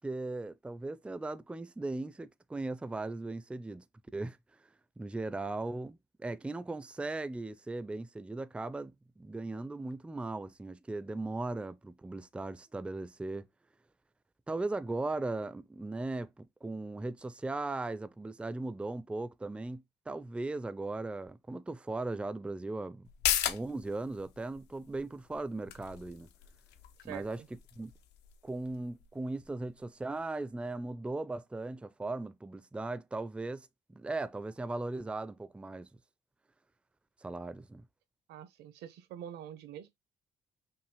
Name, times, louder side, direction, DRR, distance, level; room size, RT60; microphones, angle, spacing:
voice 1, 0.0-3.8 4.1-4.4 5.0-13.5 14.5-23.1 23.5-26.3 27.0-27.9 28.4-35.9 37.2-37.8, right 2 dB, 5° right, 0.4 m, -38 dB
sound 1, 23.0-30.2 30.5-30.6, left 11 dB, 85° left, 0.7 m, -39 dB
voice 2, 27.0-27.5 38.3-39.9, right 10 dB, 75° right, 0.9 m, -46 dB
5.8 x 2.4 x 3.2 m
cardioid pair, 110°, 17 cm